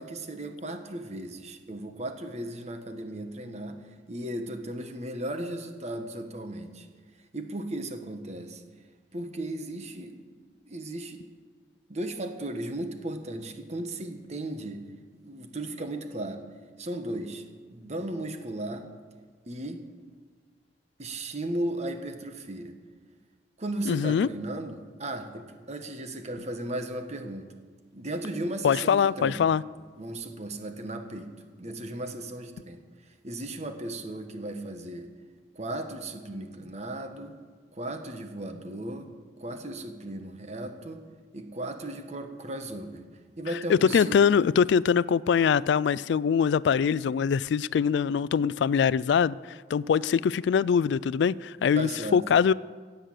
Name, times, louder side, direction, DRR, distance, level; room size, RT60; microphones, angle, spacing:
voice 1, 0.0-3.8 4.1-6.9 7.3-8.6 9.1-10.2 10.7-11.2 11.9-14.8 15.2-16.4 16.8-17.4 17.7-18.9 19.5-19.8 21.0-22.7 23.6-27.5 27.9-29.5 30.0-35.1 35.5-37.4 37.7-39.1 39.4-41.0 41.3-43.0 43.4-44.2 51.7-52.2, right 1 dB, 35° right, 1.3 m, -36 dB
voice 2, 23.9-24.3 28.6-29.6 43.7-49.4 49.7-52.5, left 7 dB, 70° left, 0.3 m, -23 dB
16.5 x 8.1 x 7.7 m
head